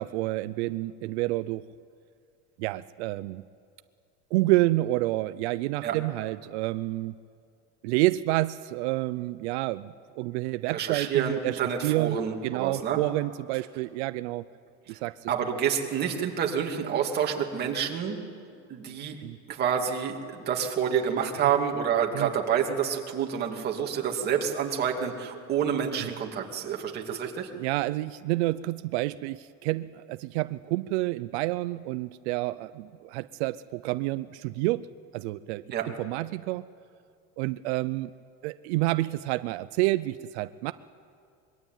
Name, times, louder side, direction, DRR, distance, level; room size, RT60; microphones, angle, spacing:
voice 1, 0.0-1.7 2.6-3.4 4.3-7.1 7.8-12.2 12.4-14.5 14.9-15.3 19.2-19.4 22.1-22.3 26.0-26.1 27.5-35.6 36.0-36.6 37.4-38.1 38.4-40.7, right 18 dB, 90° right, 13 dB, 0.7 m, -29 dB
voice 2, 10.7-13.0 14.9-15.0 15.3-18.2 18.7-19.2 19.5-27.5 35.7-35.9, right 8 dB, 30° right, 1 dB, 2.6 m, -28 dB
25.0 x 22.5 x 9.1 m, 2.4 s
cardioid pair, 170°, 32 cm